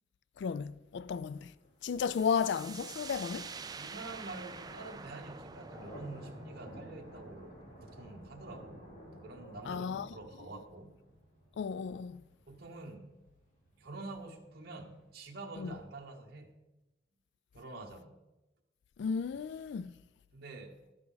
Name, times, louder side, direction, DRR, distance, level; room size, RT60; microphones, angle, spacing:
voice 1, 0.4-1.5 1.8-3.5 9.7-10.1 11.6-12.2 15.6-15.7 19.0-19.9, left 6 dB, 60° left, 0.3 m, -34 dB
sound 1, 1.3-15.2, equal, 40° left, 3.3 m, -54 dB
sound 2, 2.0-9.6, right 5 dB, 20° right, 0.4 m, -48 dB
voice 2, 3.8-8.9 9.2-11.0 12.5-13.2 13.8-16.5 17.5-18.2 20.3-20.8, right 2 dB, 50° right, 1.2 m, -47 dB
12.0 x 10.5 x 4.0 m
head